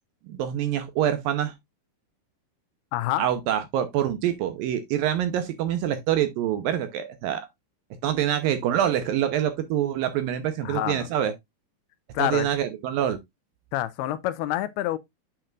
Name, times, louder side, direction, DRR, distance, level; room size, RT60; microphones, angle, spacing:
voice 1, 0.3-1.5 3.2-7.5 8.0-11.3 12.2-13.2, right 10 dB, 75° right, 2.3 m, -25 dB
voice 2, 2.9-3.2 10.6-11.1 12.1-12.5 13.7-15.0, left 14 dB, 80° left, 2.5 m, -27 dB
8.9 x 5.8 x 2.4 m
omnidirectional pair, 4.7 m